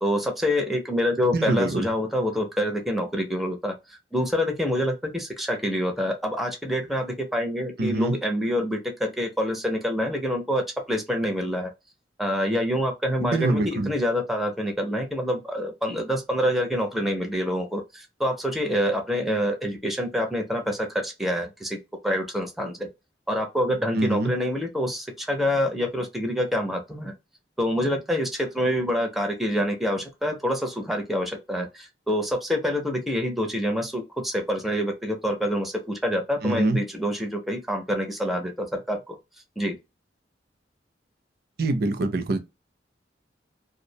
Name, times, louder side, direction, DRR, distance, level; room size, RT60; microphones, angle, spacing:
voice 1, 0.0-11.7 12.2-21.8 22.0-22.9 23.3-27.1 27.6-39.2 39.6-39.8, equal, ahead, 0.4 m, -26 dB
voice 2, 1.3-1.9 7.8-8.1 13.2-13.9 23.9-24.3 36.4-36.8 41.6-42.4, right 2 dB, 60° right, 0.5 m, -24 dB
2.3 x 2.0 x 2.6 m
head